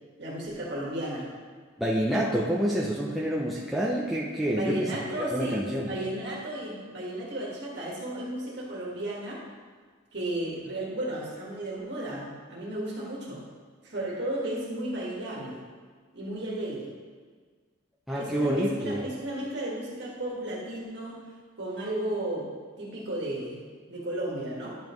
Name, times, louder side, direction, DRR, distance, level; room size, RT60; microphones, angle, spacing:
voice 1, 0.2-1.3 4.5-9.4 10.1-13.4 13.8-15.7 16.1-16.9 18.1-21.2 21.6-22.5 22.8-23.6 23.9-24.8, right 1 dB, 55° right, -4 dB, 1.8 m, -34 dB
voice 2, 1.8-4.9 5.2-5.9 18.1-19.0, equal, ahead, -5 dB, 0.5 m, -27 dB
10.5 x 5.3 x 3.1 m, 1.6 s
head